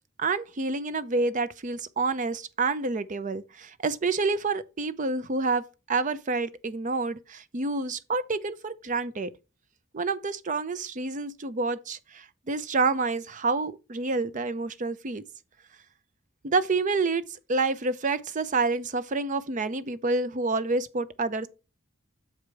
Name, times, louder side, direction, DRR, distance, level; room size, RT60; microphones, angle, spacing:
voice 1, 0.2-9.3 9.9-15.2 16.4-21.5, right 3 dB, 40° right, 0.6 m, -28 dB
7.2 x 5.0 x 4.6 m
head